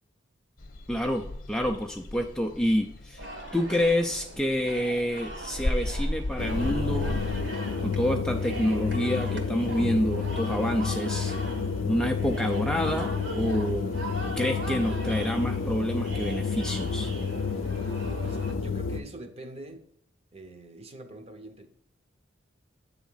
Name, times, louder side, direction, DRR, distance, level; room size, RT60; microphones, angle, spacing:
sound 1, 0.6-7.4, left 1 dB, 50° left, 0.8 m, -35 dB
voice 1, 0.9-3.3 3.5-7.2 7.8-11.3 11.9-13.9 14.4-17.1, equal, 5° left, 0.4 m, -28 dB
sound 2, 3.2-18.5, right 1 dB, 75° right, 1.6 m, -41 dB
sound 3, 6.4-19.0, left 5 dB, 90° left, 0.5 m, -30 dB
voice 2, 18.2-19.9 20.3-21.7, right 1 dB, 30° right, 0.8 m, -44 dB
8.3 x 3.5 x 5.6 m
head